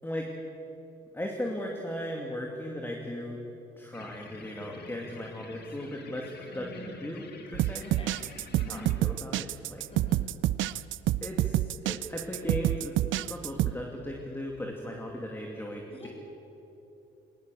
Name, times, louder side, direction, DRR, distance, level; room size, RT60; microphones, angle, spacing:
voice 1, 0.0-0.4 1.1-3.4 3.8-7.9 8.7-9.8 11.2-16.1, left 1 dB, 10° left, 0 dB, 2.5 m, -37 dB
sound 1, 3.9-8.9, left 4 dB, 55° left, 2.3 m, -49 dB
voice 2, 6.5-6.9 7.8-8.1 8.6-8.8 9.9-10.2 15.9-16.1, equal, 30° left, 1 dB, 4.9 m, -44 dB
sound 2, 7.5-13.7, right 14 dB, 75° right, 0.5 m, -28 dB
20.5 x 19.0 x 7.0 m, 3.0 s
cardioid pair, 90°, 20 cm